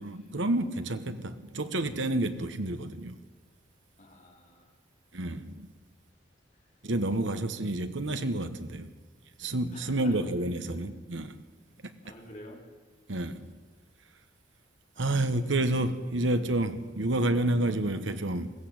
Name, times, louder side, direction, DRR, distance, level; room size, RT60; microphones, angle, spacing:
voice 1, 0.0-3.2 5.1-5.7 6.8-8.9 9.4-11.4 11.8-11.9 13.1-13.5 15.0-18.5, right 1 dB, 80° right, 1.2 m, -29 dB
voice 2, 4.0-4.7 9.7-10.2 10.7-10.9 11.6-12.6 15.0-15.3, left 1 dB, 45° left, 4.3 m, -50 dB
21.0 x 15.0 x 8.8 m
head